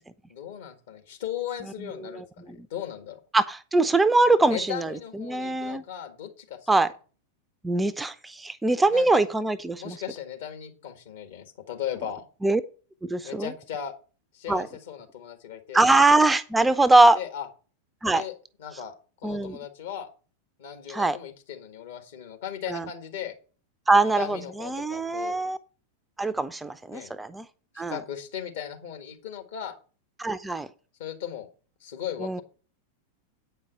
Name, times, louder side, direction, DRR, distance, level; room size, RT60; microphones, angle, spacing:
voice 1, 0.3-3.2 4.5-6.7 8.9-9.2 9.8-12.3 13.2-13.9 14.3-15.9 17.2-17.5 18.1-18.3 18.6-18.9 19.2-20.1 20.6-23.3 24.0-25.4 26.9-27.1 27.7-29.8 31.0-31.5 31.8-32.4, left 9 dB, 60° left, 5 dB, 2.0 m, -37 dB
voice 2, 3.3-5.8 6.7-6.9 7.6-10.0 12.4-12.6 13.1-13.5 14.5-14.7 15.7-17.2 18.0-18.2 19.2-19.6 20.9-21.2 22.7-22.8 23.9-25.6 26.2-27.5 27.8-28.0 30.2-30.7 32.2-32.4, right 2 dB, 10° right, 13 dB, 0.5 m, -22 dB
8.5 x 5.4 x 7.7 m, 0.38 s
figure-of-eight pair, 90°, 0 cm